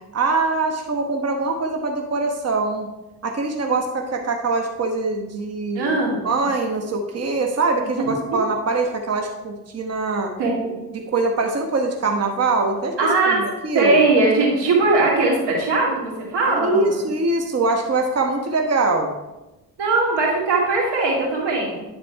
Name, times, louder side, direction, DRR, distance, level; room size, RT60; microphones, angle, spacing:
voice 1, 0.1-2.9 3.2-5.9 6.2-10.3 10.9-12.9 13.3-14.0 16.6-19.1 20.2-20.3, right 3 dB, 40° right, 3 dB, 1.1 m, -23 dB
voice 2, 5.7-6.3 8.0-8.4 10.4-10.8 13.0-13.4 13.7-17.1 19.8-21.8, right 3 dB, 85° right, -2 dB, 2.4 m, -20 dB
9.9 x 4.2 x 4.5 m, 1.0 s
supercardioid pair, 55°, 41 cm